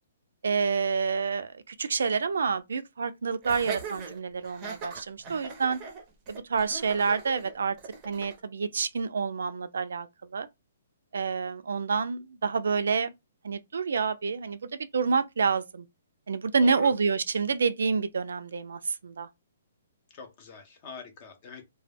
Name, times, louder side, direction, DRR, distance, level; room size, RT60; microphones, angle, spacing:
voice 1, 0.4-5.8 6.3-7.8 8.0-10.1 10.3-10.5 11.1-13.1 13.4-15.9 16.3-19.3, right 5 dB, 85° right, 0.4 m, -28 dB
Laughter, 3.4-8.4, right 5 dB, 20° right, 0.6 m, -40 dB
voice 2, 16.4-16.9 20.1-21.6, left 5 dB, 30° left, 0.6 m, -44 dB
2.2 x 2.0 x 3.2 m
hypercardioid pair, 170°, 0 cm